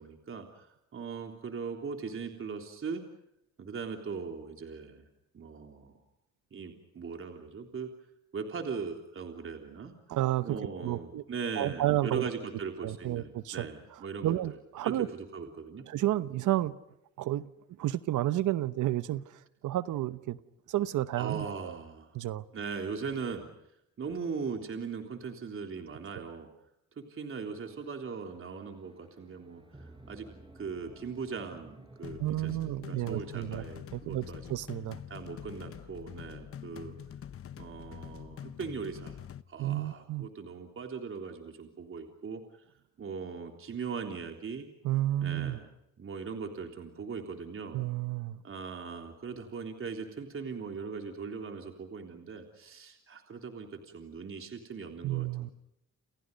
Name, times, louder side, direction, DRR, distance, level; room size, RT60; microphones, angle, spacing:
voice 1, 0.0-3.0 3.6-5.1 5.3-6.0 6.5-7.9 8.3-9.9 10.4-14.6 14.8-15.8 21.2-22.2 22.5-23.5 24.0-26.5 27.0-30.3 30.6-34.5 35.1-36.9 37.6-39.2 39.5-42.6 43.0-44.7 45.2-45.7 46.0-47.9 48.4-55.5, right 5 dB, 45° right, 3.5 m, -39 dB
voice 2, 10.1-11.2 11.6-12.2 12.8-13.7 14.2-15.1 15.9-16.7 17.2-17.5 17.8-19.2 19.6-20.4 20.7-21.8 22.1-22.4 32.2-33.6 33.9-35.0 39.6-40.3 44.8-45.6 47.7-48.4 55.0-55.5, right 14 dB, 80° right, 1.0 m, -31 dB
sound 1, 27.3-32.9, right 2 dB, 15° right, 5.7 m, -55 dB
sound 2, 32.0-39.4, left 9 dB, 50° left, 1.1 m, -45 dB
29.5 x 29.5 x 5.4 m
cardioid pair, 90°, 30 cm